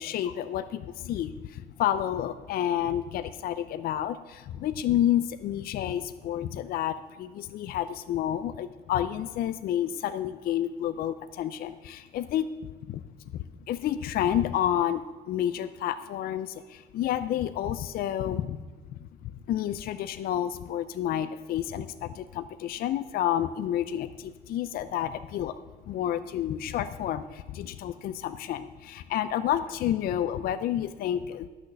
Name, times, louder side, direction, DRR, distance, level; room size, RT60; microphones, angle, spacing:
voice 1, 0.0-12.5 12.9-13.0 13.3-15.0 15.3-18.6 18.9-25.5 25.9-31.5, left 11 dB, 60° left, 12 dB, 0.5 m, -30 dB
11.0 x 6.4 x 6.4 m, 1.4 s
cardioid pair, 110°, 17 cm